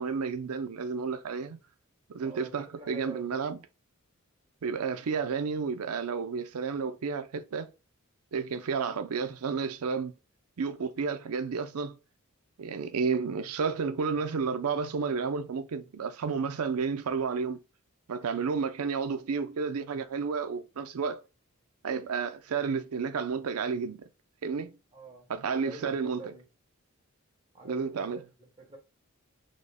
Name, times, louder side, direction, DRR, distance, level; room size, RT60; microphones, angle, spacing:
voice 1, 0.0-1.6 2.1-3.6 4.6-7.7 8.3-10.1 10.6-12.0 12.6-17.6 18.1-21.2 21.8-24.1 24.4-24.8 25.3-26.3 27.6-28.2, right 5 dB, 85° right, 0.5 m, -31 dB
voice 2, 2.2-3.4 24.9-26.4 27.5-28.8, right 2 dB, 25° right, 1.3 m, -47 dB
3.8 x 2.1 x 3.3 m
head